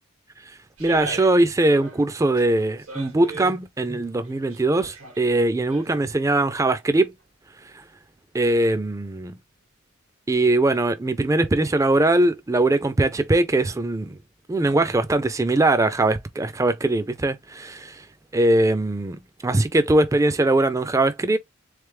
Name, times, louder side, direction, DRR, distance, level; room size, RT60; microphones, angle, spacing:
voice 1, 0.8-7.1 8.3-9.3 10.3-14.1 14.5-18.0 18.3-21.4, right 2 dB, 15° right, 0.4 m, -21 dB
sound 1, 0.8-1.5 1.7-3.5 4.1-6.1 6.5-6.6, right 2 dB, 90° right, 1.6 m, -39 dB
3.7 x 3.3 x 3.2 m
head